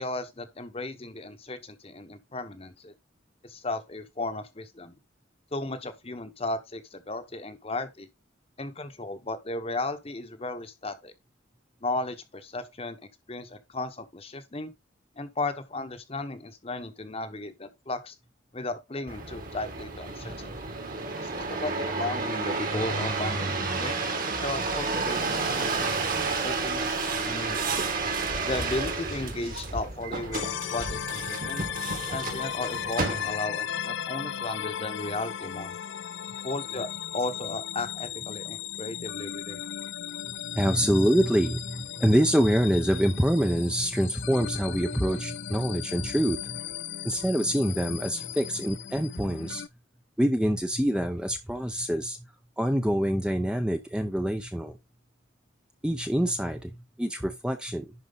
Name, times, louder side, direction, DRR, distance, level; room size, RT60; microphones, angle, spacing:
voice 1, 0.0-2.9 3.4-5.0 5.5-8.1 8.6-11.1 11.8-13.0 13.3-14.7 15.2-18.1 18.5-20.5 21.2-24.0 24.4-26.0 26.4-27.8 28.4-31.7 32.1-35.7 36.4-39.7, left 2 dB, 30° left, 1.1 m, -35 dB
sound 1, 19.1-33.6 34.2-34.7, right 3 dB, 45° right, 1.8 m, -31 dB
sound 2, 30.3-49.7, left 9 dB, 60° left, 0.4 m, -36 dB
voice 2, 40.3-46.6 47.0-49.6 50.2-52.2 52.6-54.8 55.8-57.9, equal, 5° right, 0.6 m, -26 dB
11.0 x 4.6 x 4.0 m
head